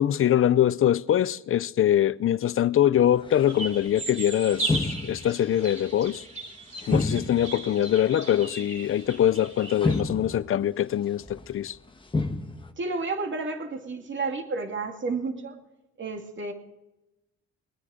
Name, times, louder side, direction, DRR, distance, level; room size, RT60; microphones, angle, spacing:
voice 1, 0.0-6.2 6.9-11.8, left 11 dB, 45° left, 0.5 m, -23 dB
sound 1, 3.0-4.1 4.5-5.7 6.0-6.2 6.8-7.6 7.9-8.5 9.2-9.3 9.7-10.6 11.2-11.6 12.0-12.7, left 3 dB, 15° left, 1.2 m, -30 dB
sound 2, 3.5-10.0, right 3 dB, 25° right, 3.1 m, -37 dB
voice 2, 12.8-15.6 16.0-16.5, right 3 dB, 40° right, 2.5 m, -31 dB
22.0 x 9.8 x 5.0 m
cardioid pair, 90°, 30 cm